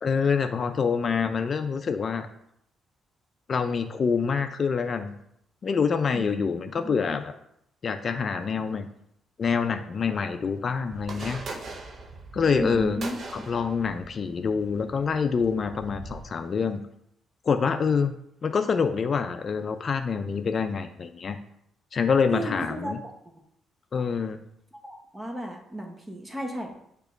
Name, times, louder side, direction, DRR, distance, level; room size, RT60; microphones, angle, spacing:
voice 1, 0.0-2.3 3.5-5.2 5.6-7.3 7.8-8.9 9.4-11.4 12.3-13.0 13.3-16.8 17.4-18.1 18.4-21.4 21.9-23.0 23.9-24.4, left 5 dB, 45° left, 8 dB, 0.4 m, -26 dB
sound 1, 10.9-16.2, right 3 dB, 50° right, 0.8 m, -41 dB
voice 2, 12.5-13.5 22.3-22.9 24.8-26.7, right 1 dB, 15° right, 2 dB, 1.3 m, -33 dB
6.7 x 2.9 x 5.1 m, 0.75 s
cardioid pair, 90°, 0 cm